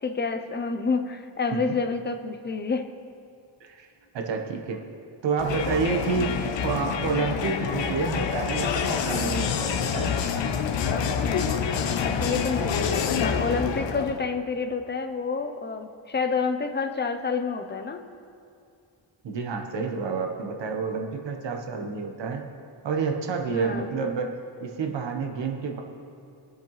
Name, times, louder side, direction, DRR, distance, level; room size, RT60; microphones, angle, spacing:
voice 1, 0.0-2.9 6.2-6.5 12.0-18.0 23.5-23.9, left 4 dB, 25° left, 6 dB, 0.7 m, -29 dB
voice 2, 4.1-4.8 5.2-6.3 6.6-10.1 19.2-22.4 22.8-24.3 24.6-25.8, right 5 dB, 70° right, 3 dB, 1.3 m, -29 dB
Crowd, 5.4-14.2, left 6 dB, 70° left, 1.0 m, -27 dB
22.5 x 8.0 x 3.3 m, 2.5 s
wide cardioid pair, 135°, 45 cm